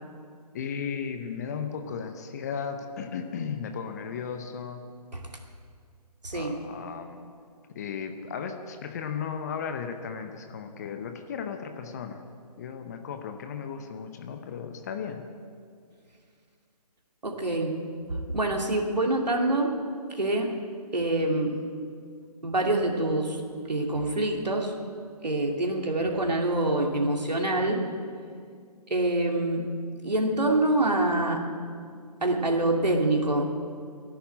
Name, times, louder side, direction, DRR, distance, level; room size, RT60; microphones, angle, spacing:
voice 1, 0.5-4.9 6.3-7.3 7.7-12.2 12.6-15.3, left 6 dB, 25° left, 7 dB, 0.8 m, -35 dB
voice 2, 6.2-6.6 17.2-17.8 18.3-19.7 20.1-20.5 20.9-21.5 22.4-23.4 23.7-24.7 25.2-27.8 28.9-29.6 30.0-31.4 32.2-33.5, right 2 dB, 80° right, 1 dB, 2.5 m, -25 dB
11.5 x 11.0 x 8.9 m, 2.1 s
figure-of-eight pair, 145°, 21 cm